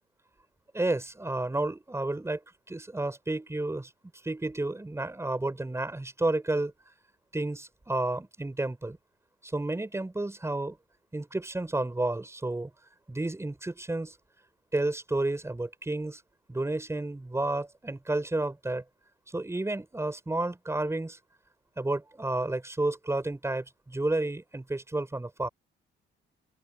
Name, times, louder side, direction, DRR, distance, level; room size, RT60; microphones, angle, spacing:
voice 1, 0.7-2.4 2.7-3.9 4.2-6.7 7.3-9.0 9.4-10.8 11.1-12.7 13.1-14.2 14.7-16.2 16.5-18.8 19.3-21.2 21.8-25.5, right 2 dB, 15° right, 5.5 m, -31 dB
open air
cardioid pair, 90°, 20 cm